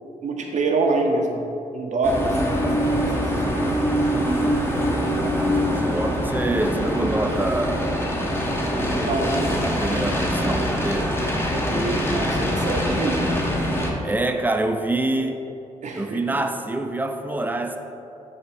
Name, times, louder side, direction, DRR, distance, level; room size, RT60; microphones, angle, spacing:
voice 1, 0.2-1.5 1.7-3.1 3.5-3.7 8.9-9.6 11.5-13.3 15.8-16.2, right 2 dB, 60° right, 1 dB, 0.7 m, -25 dB
sound 1, 2.0-13.9, equal, 15° left, 1.0 m, -23 dB
voice 2, 5.3-7.9 8.6-9.3 9.6-11.2 14.0-15.4 15.9-17.8, right 2 dB, 15° right, 6 dB, 0.5 m, -26 dB
4.9 x 4.5 x 4.2 m, 2.7 s
supercardioid pair, 55°, 14 cm